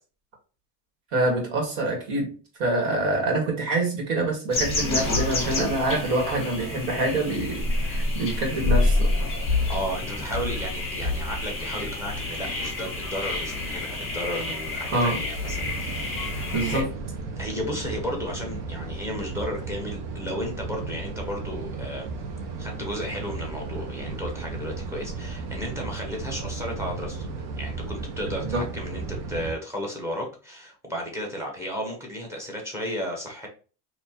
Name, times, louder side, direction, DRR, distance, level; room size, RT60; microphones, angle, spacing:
voice 1, 1.1-2.3 2.6-9.1 14.9-15.2 16.5-16.9 28.4-28.6, right 2 dB, 65° right, 1 dB, 1.9 m, -26 dB
sound 1, 4.5-16.8, left 2 dB, 15° left, 1.3 m, -28 dB
voice 2, 9.5-16.9 17.4-22.1 22.6-27.3 27.6-33.5, equal, 5° right, 1 dB, 0.9 m, -34 dB
sound 2, 15.4-29.5, right 4 dB, 85° right, 1.0 m, -35 dB
4.2 x 2.9 x 2.8 m, 0.36 s
cardioid pair, 160°, 46 cm